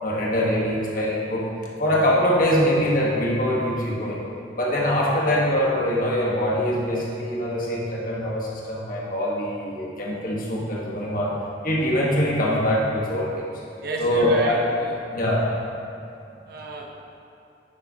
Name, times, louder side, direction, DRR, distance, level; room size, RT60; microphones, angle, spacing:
voice 1, 0.0-1.4 1.8-4.2 4.6-11.3 11.6-13.5 14.0-14.7 15.1-15.5, equal, 50° left, -4 dB, 1.4 m, -23 dB
voice 2, 13.8-14.9 16.5-17.0, right 1 dB, 60° right, 0 dB, 0.9 m, -30 dB
9.8 x 6.8 x 2.9 m, 2.6 s
head